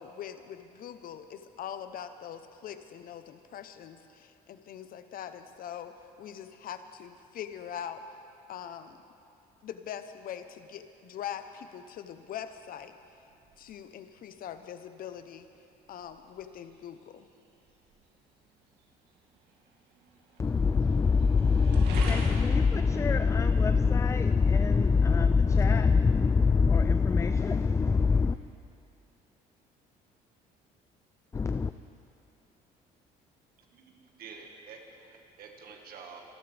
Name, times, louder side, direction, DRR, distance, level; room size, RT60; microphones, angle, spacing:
voice 1, 0.0-8.0 8.5-9.0 9.6-12.9 13.6-15.5 15.9-17.3 25.6-25.8, left 9 dB, 60° left, 10 dB, 0.9 m, -42 dB
sound 1, 12.1-27.5, right 3 dB, 85° right, 2.3 m, -49 dB
voice 2, 20.4-28.4 31.3-31.7, left 5 dB, 15° left, 10 dB, 0.3 m, -24 dB
voice 3, 33.7-36.2, right 5 dB, 65° right, 2 dB, 1.7 m, -48 dB
26.0 x 13.0 x 3.5 m, 2.7 s
cardioid pair, 110°, 17 cm